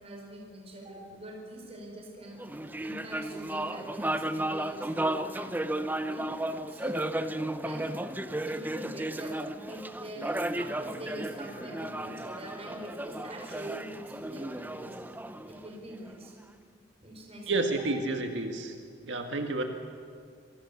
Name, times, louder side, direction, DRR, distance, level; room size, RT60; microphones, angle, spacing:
voice 1, 0.0-2.4 2.8-6.4 6.7-7.1 7.6-7.9 8.4-9.4 9.6-15.0 15.4-16.3 17.0-18.1, right 1 dB, 35° right, 0 dB, 5.3 m, -43 dB
sound 1, 2.4-16.1, right 1 dB, 10° right, 0.8 m, -34 dB
voice 2, 17.5-18.7 19.1-19.6, right 2 dB, 75° right, 4 dB, 1.9 m, -30 dB
27.0 x 23.0 x 7.2 m, 2.1 s
head